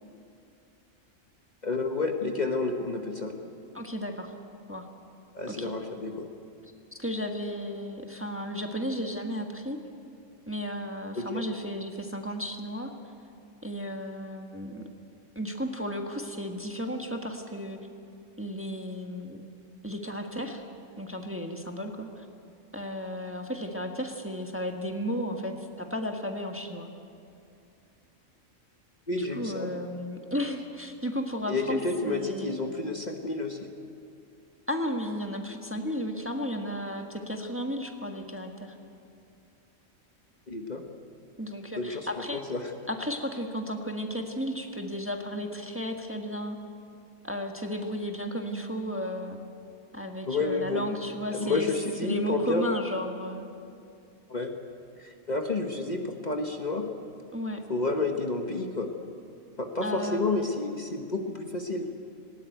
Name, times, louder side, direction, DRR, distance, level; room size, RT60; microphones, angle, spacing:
voice 1, 1.6-3.4 5.3-6.3 11.1-11.4 29.1-29.7 31.5-33.7 40.5-40.8 41.8-42.7 50.3-50.9 51.3-52.7 54.3-54.5 55.0-56.9 57.7-58.9 59.6-61.9, left 3 dB, 35° left, 3 dB, 1.3 m, -30 dB
voice 2, 3.7-4.3 4.7-4.9 5.5-5.7 6.9-9.8 10.5-12.9 13.6-14.8 15.3-17.8 18.4-19.4 19.8-20.6 21.0-22.2 22.7-26.9 29.1-32.6 34.7-38.8 41.4-42.4 42.9-46.6 47.2-49.4 49.9-51.7 52.0-53.5 57.3-57.6 59.8-60.5, equal, 10° right, 3 dB, 1.4 m, -34 dB
19.0 x 18.5 x 9.2 m, 2.5 s
omnidirectional pair, 1.3 m